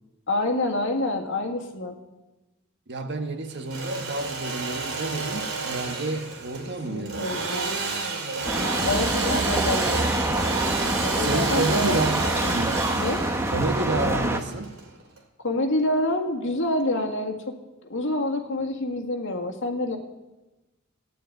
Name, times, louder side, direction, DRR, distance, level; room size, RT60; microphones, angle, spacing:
voice 1, 0.3-2.0 6.9-7.8 8.8-10.1 11.0-12.5 13.0-13.2 15.4-17.4 17.9-20.0, left 2 dB, 65° left, 1.9 m, -27 dB
voice 2, 2.9-7.5 8.8-9.0 11.1-12.8 13.5-14.8, right 2 dB, 55° right, 1.4 m, -30 dB
Engine / Sawing, 3.5-15.2, right 4 dB, 80° right, 3.2 m, -31 dB
sound 1, 8.4-14.4, right 1 dB, 15° right, 1.2 m, -26 dB
14.5 x 9.7 x 9.2 m
head